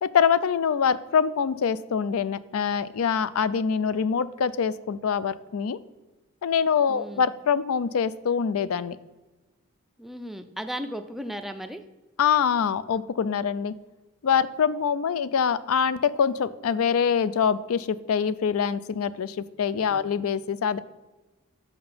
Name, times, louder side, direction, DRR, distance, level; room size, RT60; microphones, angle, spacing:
voice 1, 0.0-5.8 6.4-9.0 12.2-13.7 14.2-20.8, left 7 dB, 75° left, 16 dB, 0.4 m, -24 dB
voice 2, 6.9-7.3 10.0-11.8 19.8-20.1, equal, ahead, 7 dB, 0.4 m, -36 dB
5.8 x 5.8 x 5.5 m, 1.1 s
head